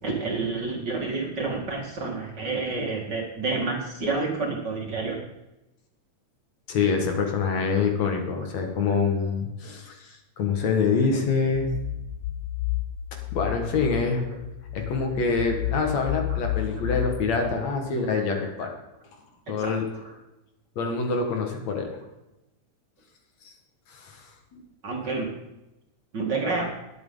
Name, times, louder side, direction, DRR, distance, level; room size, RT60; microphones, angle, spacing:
voice 1, 0.0-5.2 8.4-8.5 9.2-9.3 14.3-14.4 15.5-15.9 16.3-16.4 17.2-17.3 18.4-18.7 19.5-19.7 20.0-20.1 24.8-25.3 26.1-26.7, right 3 dB, 40° right, 0 dB, 2.3 m, -29 dB
voice 2, 6.7-11.7 13.3-14.2 14.7-18.7 19.5-19.8 20.8-22.0 23.9-24.6, left 5 dB, 70° left, 3 dB, 2.9 m, -26 dB
sound 1, 11.5-17.6, left 13 dB, 85° left, 1.1 m, -32 dB
20.5 x 8.2 x 3.9 m, 0.94 s
omnidirectional pair, 3.3 m